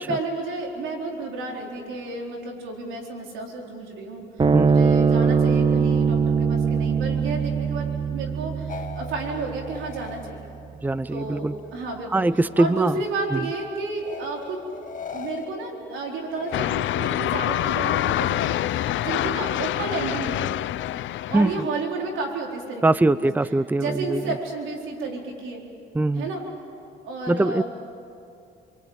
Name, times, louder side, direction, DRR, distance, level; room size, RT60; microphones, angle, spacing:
voice 1, 0.0-4.2 4.6-10.4 11.1-12.3 12.6-14.6 15.1-20.6 21.3-23.2 23.8-25.6 26.2-26.4 27.0-27.6, right 3 dB, 90° right, 0 dB, 4.4 m, -31 dB
sound 1, 4.4-11.0, right 6 dB, 25° right, 1.1 m, -23 dB
voice 2, 4.5-5.0 10.8-11.5 12.1-13.0 13.3-13.4 21.3-21.7 22.8-24.3 25.9-26.3 27.3-27.6, right 2 dB, 10° right, 16 dB, 0.6 m, -22 dB
sound 2, 8.7-11.9 12.2-13.0 14.0-17.3 17.8-18.5, left 6 dB, 40° left, 2.0 m, -41 dB
sound 3, 16.5-21.6, left 13 dB, 75° left, 0.6 m, -26 dB
28.0 x 23.5 x 9.0 m, 2.5 s
cardioid pair, 90°, 20 cm